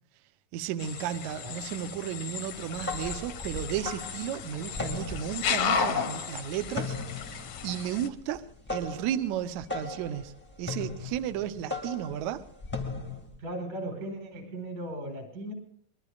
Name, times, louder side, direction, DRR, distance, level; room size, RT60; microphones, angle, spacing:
voice 1, 0.5-8.4 8.7-10.3 10.6-12.4, right 10 dB, 75° right, 9 dB, 1.7 m, -34 dB
sound 1, 0.8-8.1, left 6 dB, 70° left, 1.5 m, -34 dB
sound 2, 2.6-13.4, left 3 dB, 10° left, 0.6 m, -38 dB
voice 2, 13.4-15.5, right 1 dB, 60° right, 3 dB, 5.9 m, -37 dB
25.0 x 21.0 x 2.4 m, 0.62 s
omnidirectional pair, 4.2 m